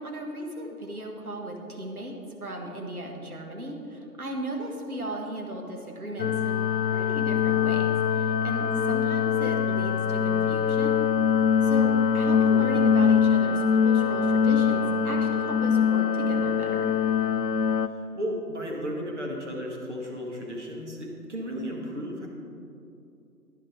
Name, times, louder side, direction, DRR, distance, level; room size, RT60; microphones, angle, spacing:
voice 1, 0.0-2.1 2.4-11.0 11.6-16.9, right 1 dB, 60° right, 2 dB, 1.7 m, -36 dB
sound 1, 6.2-17.9, left 7 dB, 75° left, 0.6 m, -23 dB
voice 2, 18.2-22.3, equal, 45° right, -1 dB, 1.8 m, -34 dB
10.0 x 9.1 x 4.6 m, 2.6 s
figure-of-eight pair, 155°, 49 cm